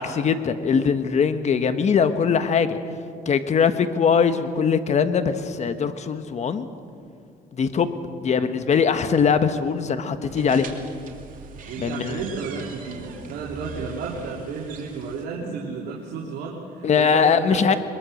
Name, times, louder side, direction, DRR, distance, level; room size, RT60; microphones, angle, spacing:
voice 1, 0.0-2.8 3.3-6.7 7.6-7.9 8.2-10.7 11.8-12.2 16.8-17.7, left 6 dB, 40° left, 10 dB, 1.4 m, -21 dB
sound 1, 10.2-15.2, right 5 dB, 55° right, 2.6 m, -41 dB
voice 2, 11.6-17.6, right 4 dB, 80° right, -4 dB, 2.9 m, -32 dB
22.0 x 21.5 x 6.5 m, 2.3 s
cardioid pair, 110°, 17 cm